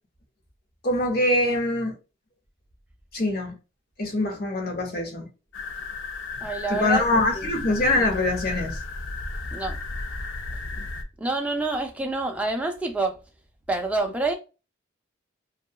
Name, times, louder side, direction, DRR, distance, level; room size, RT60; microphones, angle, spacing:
voice 1, 0.8-1.9 3.1-3.5 4.0-5.3 6.7-8.8, left 2 dB, 50° left, 0.7 m, -24 dB
sound 1, 5.5-11.0, left 3 dB, 75° left, 0.4 m, -34 dB
voice 2, 6.4-7.0 7.3-7.5 9.5-9.8 11.2-13.2 13.7-14.3, right 2 dB, 5° right, 0.4 m, -27 dB
2.7 x 2.3 x 2.2 m
head